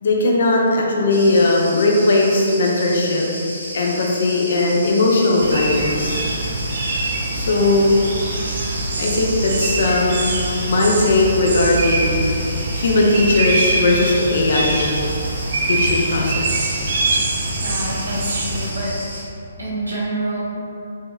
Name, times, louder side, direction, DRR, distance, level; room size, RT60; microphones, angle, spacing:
voice 1, 0.0-3.3 3.7-6.2 7.3-8.0 9.0-10.3 10.7-12.2 12.7-14.8 15.7-16.7, left 2 dB, 55° left, -1 dB, 0.4 m, -18 dB
Cricket, 1.1-19.2, equal, 85° left, 1.1 m, -33 dB
sound 1, 5.4-18.7, right 2 dB, 50° right, 0.4 m, -24 dB
voice 2, 17.5-19.2 19.6-20.4, right 1 dB, 75° right, -7 dB, 0.9 m, -27 dB
3.5 x 2.9 x 2.3 m, 2.7 s
figure-of-eight pair, 130°, 0 cm